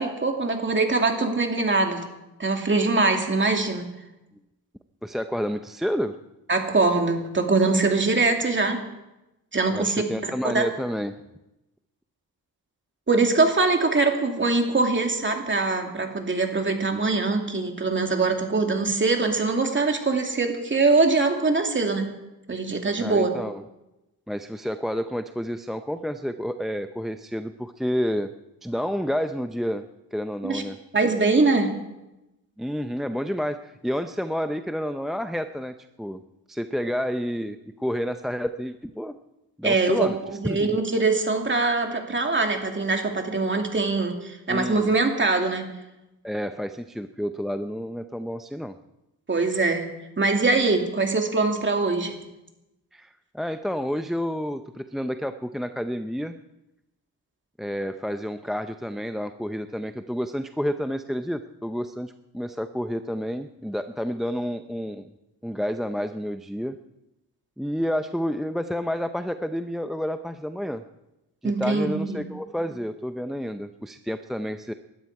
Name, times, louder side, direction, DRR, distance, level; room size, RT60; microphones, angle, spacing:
voice 1, 0.0-2.0 2.4-3.9 6.5-8.8 9.5-10.6 13.1-22.0 22.5-23.3 30.4-30.6 30.9-31.8 39.6-45.7 49.3-49.9 50.2-52.2 71.4-72.2, right 3 dB, 30° right, 3 dB, 2.7 m, -23 dB
voice 2, 5.0-6.2 9.7-11.2 23.0-23.6 24.3-28.3 28.6-30.8 32.6-36.2 36.5-39.1 39.6-40.2 40.4-40.8 44.5-44.9 46.2-48.7 52.9-56.4 57.6-65.1 65.4-66.8 67.6-70.8 71.4-74.7, equal, ahead, 9 dB, 0.6 m, -30 dB
20.5 x 12.0 x 4.8 m, 0.95 s
cardioid pair, 90°, 37 cm